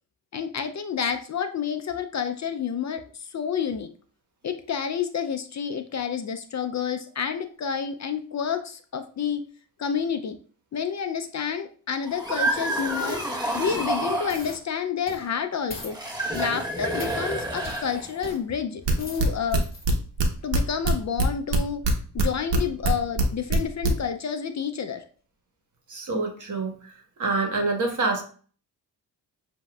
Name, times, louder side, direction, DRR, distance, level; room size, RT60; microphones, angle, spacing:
voice 1, 0.3-3.9 4.4-9.4 9.8-10.4 10.7-13.2 13.5-16.0 16.3-19.7 20.4-21.8 22.1-25.0, left 7 dB, 45° left, 8 dB, 0.5 m, -29 dB
sound 1, 12.0-14.5 15.9-18.3, right 1 dB, 10° right, 1.4 m, -29 dB
sound 2, 12.9-13.3 13.6-14.0 14.3-14.6 15.1-15.3 15.7-15.9 16.3-16.6 17.0-17.2 17.6-17.8 18.2-18.4 18.8-19.9 20.3-20.4, left 2 dB, 20° left, 1.8 m, -42 dB
sound 3, 18.9-20.6 20.8-22.6 22.8-23.9, right 5 dB, 80° right, 1.1 m, -23 dB
voice 2, 25.9-26.9 27.2-28.2, right 3 dB, 45° right, 3 dB, 1.4 m, -26 dB
7.4 x 2.7 x 2.3 m, 0.43 s
cardioid pair, 85°, 41 cm